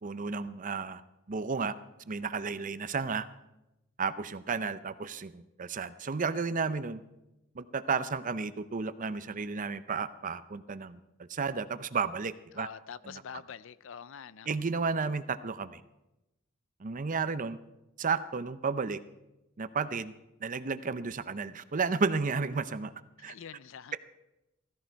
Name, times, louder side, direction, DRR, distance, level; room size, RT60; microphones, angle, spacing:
voice 1, 0.0-1.0 1.3-1.7 2.1-3.3 4.0-7.0 7.5-12.7 13.0-13.2 14.5-15.8 16.8-17.6 18.0-19.0 19.6-20.1 20.4-22.9 23.2-23.3, right 5 dB, 40° right, 0.6 m, -32 dB
voice 2, 12.5-14.5 23.2-24.0, left 7 dB, 65° left, 0.5 m, -45 dB
15.5 x 15.0 x 4.6 m
head